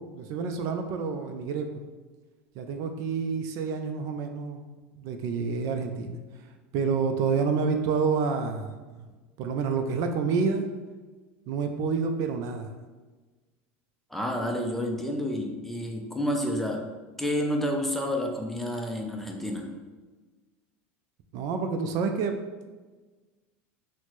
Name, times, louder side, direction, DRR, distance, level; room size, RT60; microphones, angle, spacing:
voice 1, 0.0-1.8 2.6-4.6 5.0-6.2 6.7-9.0 9.4-10.7 11.5-12.7 21.3-22.4, right 5 dB, 55° right, 5 dB, 0.4 m, -28 dB
voice 2, 14.1-16.9 17.2-19.7, left 1 dB, 5° left, 1 dB, 0.5 m, -29 dB
4.1 x 2.1 x 3.1 m, 1.3 s
supercardioid pair, 105°, 7 cm